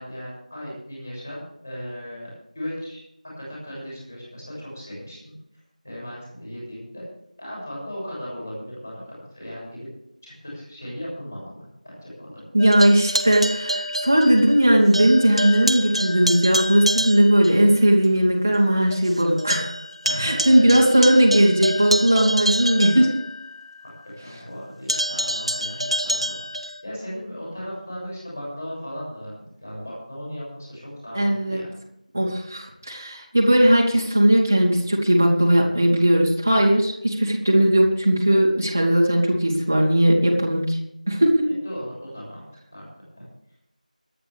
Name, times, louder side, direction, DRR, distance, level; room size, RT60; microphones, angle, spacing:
voice 1, 0.0-3.0 3.4-5.3 5.8-7.0 7.4-9.9 10.2-12.4 20.0-20.8 23.8-26.4 26.8-31.7 41.5-42.5 42.7-42.8 43.2-43.3, equal, 20° left, -5 dB, 7.2 m, -36 dB
voice 2, 12.5-19.8 20.2-23.1 31.1-31.6 32.1-40.8 41.1-41.5, right 1 dB, 15° right, -3 dB, 2.4 m, -18 dB
sound 1, 12.6-14.7 14.9-17.6 18.0-18.1 18.6-18.7 18.9-23.7 24.9-26.8, equal, 45° right, 1.8 m, -27 dB
24.5 x 10.0 x 3.6 m, 0.78 s
figure-of-eight pair, 180°, 4 cm